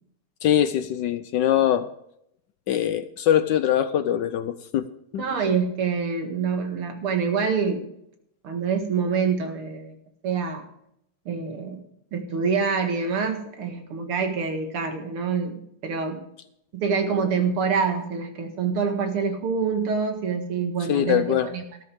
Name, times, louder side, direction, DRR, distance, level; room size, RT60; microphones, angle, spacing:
voice 1, 0.4-1.9 2.7-4.9 5.1-5.2 20.9-21.5, left 10 dB, 70° left, 12 dB, 1.1 m, -22 dB
voice 2, 5.2-7.9 8.4-9.9 10.2-10.7 11.3-11.8 12.1-16.2 16.7-21.6, right 5 dB, 85° right, 5 dB, 2.6 m, -26 dB
13.5 x 13.0 x 3.6 m, 0.75 s
omnidirectional pair, 2.3 m